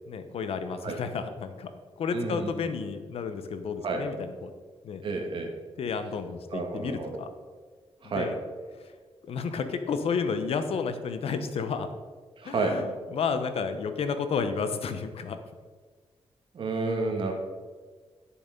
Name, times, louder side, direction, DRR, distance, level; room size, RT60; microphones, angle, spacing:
voice 1, 0.1-1.7 2.0-4.5 4.8-5.0 5.8-7.3 8.1-8.4 9.2-11.9 12.4-15.4 17.0-17.3, left 5 dB, 65° left, 9 dB, 0.9 m, -31 dB
voice 2, 2.1-2.5 3.8-4.0 5.0-5.5 6.5-7.2 8.0-8.3 12.4-12.8 16.5-17.3, right 3 dB, 55° right, 2 dB, 1.9 m, -30 dB
10.5 x 7.0 x 5.2 m, 1.5 s
wide cardioid pair, 150°, 11 cm